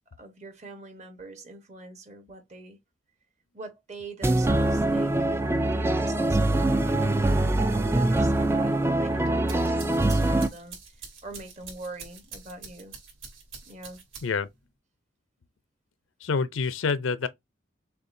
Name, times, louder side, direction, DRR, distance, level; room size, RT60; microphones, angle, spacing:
voice 1, 0.2-2.8 3.5-7.1 7.4-13.0 13.6-14.0, right 2 dB, 35° right, 1.1 m, -43 dB
Guilt Is Ringing In My Ears, 4.2-10.5, right 2 dB, 10° right, 0.3 m, -23 dB
sound 1, 9.2-14.6, right 5 dB, 70° right, 2.6 m, -45 dB
voice 2, 16.2-17.3, left 5 dB, 70° left, 0.5 m, -27 dB
6.4 x 2.4 x 2.6 m
head